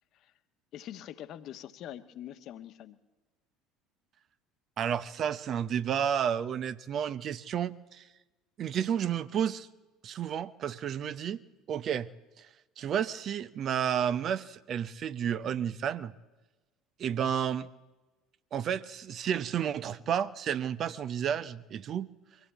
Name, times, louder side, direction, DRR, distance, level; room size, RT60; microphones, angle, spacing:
voice 1, 0.7-3.0, left 11 dB, 50° left, 10 dB, 1.2 m, -44 dB
voice 2, 4.8-8.1 8.6-9.7 10.0-11.4 11.7-12.1 12.4-12.5 12.8-16.1 17.0-17.7 18.5-22.1, right 8 dB, 40° right, 13 dB, 0.8 m, -31 dB
24.0 x 15.5 x 8.3 m, 1.1 s
figure-of-eight pair, 65°, 0 cm